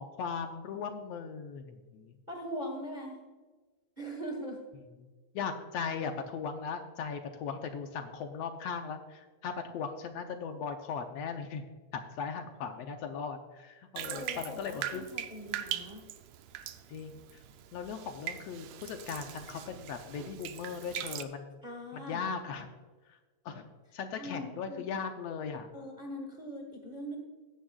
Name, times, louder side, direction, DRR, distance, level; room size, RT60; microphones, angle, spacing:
voice 1, 0.0-2.2 5.3-11.6 11.9-15.0 16.9-17.4 17.7-21.6 21.9-22.7 23.1-23.2 23.5-25.7, left 6 dB, 70° left, 6 dB, 1.7 m, -38 dB
voice 2, 2.3-3.2 4.0-4.6 14.1-16.0 21.6-22.2 24.1-24.9 25.7-27.2, equal, 35° right, 1 dB, 0.7 m, -41 dB
Bathtub (filling or washing), 14.0-21.2, right 11 dB, 75° right, 1.4 m, -41 dB
15.0 x 10.0 x 2.4 m, 1.3 s
omnidirectional pair, 3.4 m